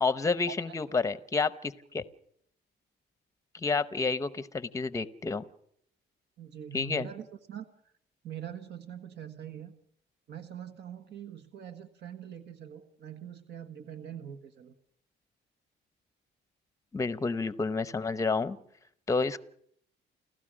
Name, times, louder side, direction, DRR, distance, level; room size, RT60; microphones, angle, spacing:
voice 1, 0.0-2.1 3.5-5.4 6.7-7.1 16.9-18.6 19.1-19.4, left 4 dB, 15° left, 14 dB, 0.8 m, -29 dB
voice 2, 6.4-7.7 8.2-9.7 10.3-14.7, right 9 dB, 65° right, 7 dB, 1.4 m, -43 dB
29.5 x 15.5 x 6.3 m, 0.69 s
cardioid pair, 140°, 19 cm